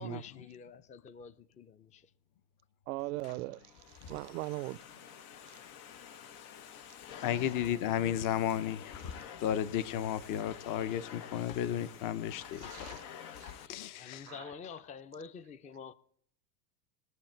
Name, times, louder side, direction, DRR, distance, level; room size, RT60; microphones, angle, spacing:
voice 1, 0.0-2.1 3.3-3.5 4.1-4.2 6.7-6.8 7.1-8.3 13.6-15.9, left 6 dB, 20° left, 0.4 m, -49 dB
voice 2, 2.9-3.6 4.1-4.8 5.1-5.2 5.5-5.6 6.1-6.2 12.6-13.0 13.4-13.5 14.3-14.4, right 20 dB, 85° right, 0.6 m, -39 dB
Domestic sounds home sounds, 3.0-13.7, left 8 dB, 80° left, 1.1 m, -49 dB
voice 3, 7.2-13.0 13.6-14.3, left 10 dB, 45° left, 0.8 m, -34 dB
21.5 x 7.4 x 4.5 m
supercardioid pair, 115°, 43 cm